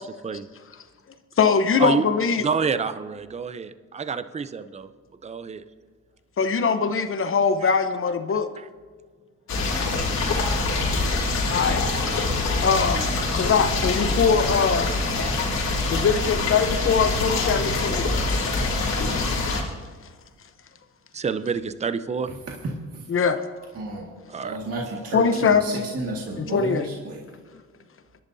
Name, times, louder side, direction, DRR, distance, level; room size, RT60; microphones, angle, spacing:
voice 1, 1.4-2.4 6.4-8.5 11.5-11.8 12.6-13.0 13.3-14.9 15.9-18.1 19.6-19.7 23.1-23.4 25.1-25.9 26.4-26.9, left 6 dB, 45° left, 9 dB, 0.9 m, -22 dB
voice 2, 2.4-4.9 5.2-5.6 7.6-7.7 11.3-11.4 14.5-14.6 21.1-22.3 24.3-24.6, right 5 dB, 20° right, 12 dB, 0.6 m, -28 dB
sound 1, 9.5-19.6, left 3 dB, 65° left, 3.1 m, -25 dB
sound 2, 14.8-15.8 16.1-16.6 17.3-19.2, equal, ahead, 4.4 m, -39 dB
voice 3, 23.7-24.1 24.4-27.2, right 2 dB, 55° right, -2 dB, 2.0 m, -31 dB
26.0 x 11.0 x 2.7 m, 1.5 s
cardioid pair, 90°, 30 cm